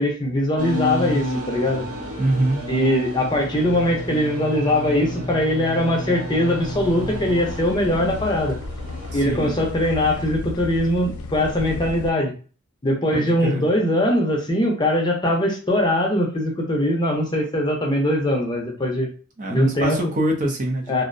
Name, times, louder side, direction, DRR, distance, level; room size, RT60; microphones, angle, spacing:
voice 1, 0.0-1.8 2.7-8.6 9.1-12.3 12.8-19.1 19.5-20.0 20.9-21.0, left 1 dB, 20° left, 0 dB, 0.5 m, -21 dB
sound 1, 0.6-9.7, equal, 85° right, 0.8 m, -31 dB
voice 2, 2.2-2.6 9.1-9.5 13.1-13.6 19.4-21.0, right 1 dB, 35° right, 2 dB, 0.5 m, -24 dB
sound 2, 6.6-12.1, left 3 dB, 85° left, 0.4 m, -34 dB
2.5 x 2.0 x 2.5 m, 0.38 s
head